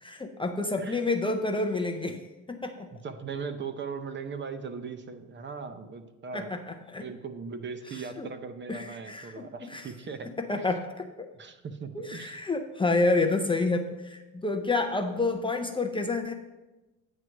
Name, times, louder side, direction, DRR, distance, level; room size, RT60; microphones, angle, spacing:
voice 1, 0.0-2.2 2.5-2.9 6.3-7.1 7.9-8.3 8.7-9.9 10.5-10.8 11.2-11.3 12.0-16.3, left 3 dB, 15° left, 5 dB, 0.5 m, -29 dB
voice 2, 2.9-6.6 7.0-10.7 11.3-12.4, right 5 dB, 35° right, 9 dB, 0.6 m, -39 dB
9.2 x 3.2 x 6.1 m, 1.1 s
cardioid pair, 105°, 32 cm